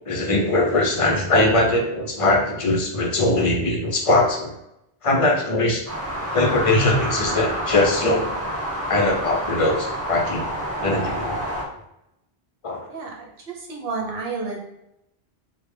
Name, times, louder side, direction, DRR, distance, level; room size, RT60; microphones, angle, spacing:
voice 1, 0.1-4.5 5.0-5.8 6.3-8.3 8.9-10.5 10.8-11.4 12.6-12.8, left 2 dB, 40° left, 1 dB, 0.5 m, -21 dB
sound 1, 5.9-11.6, equal, 20° right, 0.4 m, -28 dB
voice 2, 13.5-14.6, right 4 dB, 65° right, -1 dB, 0.8 m, -30 dB
3.3 x 2.1 x 3.2 m, 0.84 s
omnidirectional pair, 1.1 m